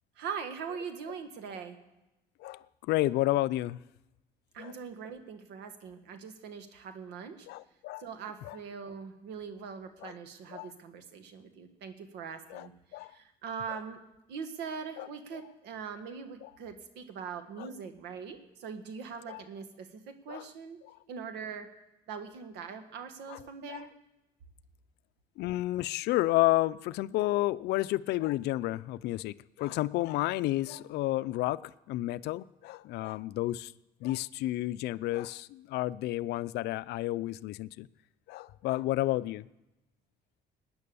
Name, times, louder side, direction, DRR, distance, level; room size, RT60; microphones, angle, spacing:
voice 1, 0.2-1.8 4.5-7.5 8.0-14.0 14.3-20.8 21.1-21.7 22.1-23.9, right 6 dB, 85° right, 8 dB, 1.6 m, -42 dB
voice 2, 2.4-3.8 4.6-4.7 7.5-8.1 8.4-8.6 10.0-10.1 10.5-10.7 12.5-12.7 12.9-13.1 15.0-15.1 16.4-16.5 17.6-17.7 19.3-19.4 20.3-20.4 23.3-23.4 23.7-23.8 25.4-31.6 31.9-33.7 34.0-37.9 38.3-39.5, left 16 dB, 80° left, 17 dB, 0.5 m, -31 dB
19.0 x 9.6 x 6.9 m, 0.98 s
cardioid pair, 110°, 17 cm